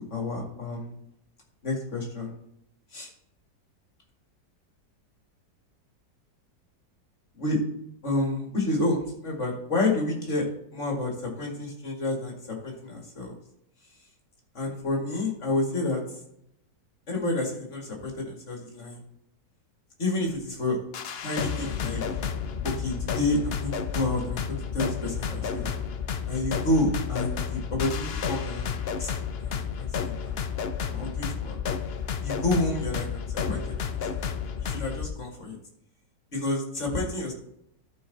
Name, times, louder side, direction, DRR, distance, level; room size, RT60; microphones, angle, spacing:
voice 1, 0.1-0.9 1.6-2.3 2.9-3.1 7.3-7.6 8.0-10.5 10.7-13.3 14.5-16.0 17.1-19.0 20.0-20.8 21.2-22.0 22.6-24.4 24.7-25.7 26.3-30.4 30.9-31.6 32.2-33.9 34.6-35.6 36.3-37.3, left 2 dB, 40° left, 0 dB, 2.4 m, -29 dB
sound 1, 20.9-35.1, left 7 dB, 75° left, 0.5 m, -31 dB
13.0 x 4.7 x 4.1 m, 0.75 s
omnidirectional pair, 1.9 m